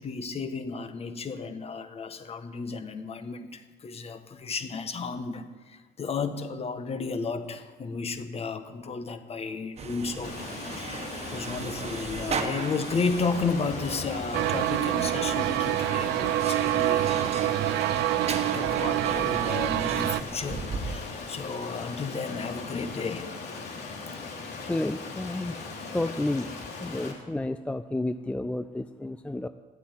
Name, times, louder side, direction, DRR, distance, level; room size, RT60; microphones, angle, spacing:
voice 1, 0.0-10.3 10.6-17.2 18.5-23.3, left 4 dB, 35° left, 9 dB, 1.4 m, -33 dB
sound 1, 9.8-21.0, right 5 dB, 40° right, 1.3 m, -37 dB
Stream, 10.2-27.1, left 4 dB, 70° left, 3.1 m, -39 dB
sound 2, 14.3-20.2, right 15 dB, 80° right, 0.4 m, -26 dB
voice 2, 24.4-25.5 25.9-26.5 26.8-29.5, left 2 dB, 5° left, 10 dB, 0.4 m, -31 dB
12.5 x 8.4 x 9.6 m, 1.3 s
cardioid pair, 110°, 17 cm